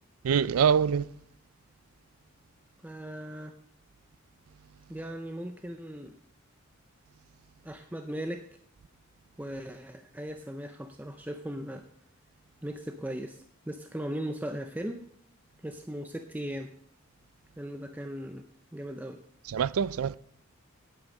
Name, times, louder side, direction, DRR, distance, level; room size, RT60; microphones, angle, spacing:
voice 1, 0.2-1.1 19.5-20.2, right 7 dB, 85° right, 0.4 m, -24 dB
voice 2, 2.8-3.5 4.9-6.1 7.6-8.5 9.4-11.9 12.6-15.0 15.6-16.7 17.6-19.2, equal, 10° right, 0.5 m, -38 dB
10.0 x 8.3 x 5.2 m
head